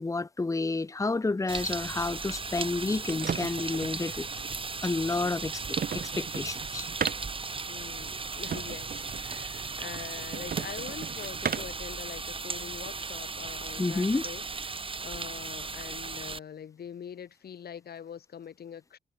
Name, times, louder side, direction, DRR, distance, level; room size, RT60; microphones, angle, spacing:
voice 1, 0.0-4.3 4.8-6.9 13.8-14.2, left 3 dB, 20° left, 1.3 m, -30 dB
sound 1, 1.5-16.4, right 4 dB, 35° right, 6.5 m, -37 dB
sound 2, 2.6-11.9, right 7 dB, 65° right, 5.1 m, -38 dB
voice 2, 7.7-19.0, left 8 dB, 80° left, 5.9 m, -44 dB
wide cardioid pair, 135°, 16 cm